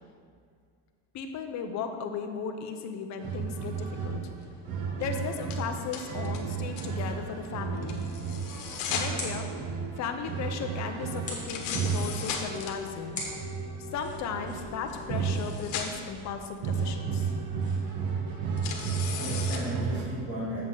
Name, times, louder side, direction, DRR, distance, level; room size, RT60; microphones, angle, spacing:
voice 1, 1.1-4.2 5.0-8.0 8.9-9.5 10.0-13.2 13.9-17.3, left 6 dB, 40° left, 5 dB, 0.6 m, -36 dB
sound 1, 3.2-16.1 16.6-20.0, right 5 dB, 50° right, 1.1 m, -33 dB
sound 2, 5.5-5.6 5.9-6.4 6.8-6.9 7.8-9.1 11.4-12.7 14.9-15.0 15.2-15.9 18.6-19.6, left 7 dB, 75° left, 1.3 m, -36 dB
voice 2, 6.1-6.4 6.9-7.3 11.3-11.8 13.2-13.5 19.1-20.7, right 1 dB, 30° right, -7 dB, 2.1 m, -37 dB
sound 3, 8.0-18.0, left 2 dB, 15° left, 1.8 m, -45 dB
7.6 x 7.4 x 3.8 m, 2.1 s
cardioid pair, 160°, 46 cm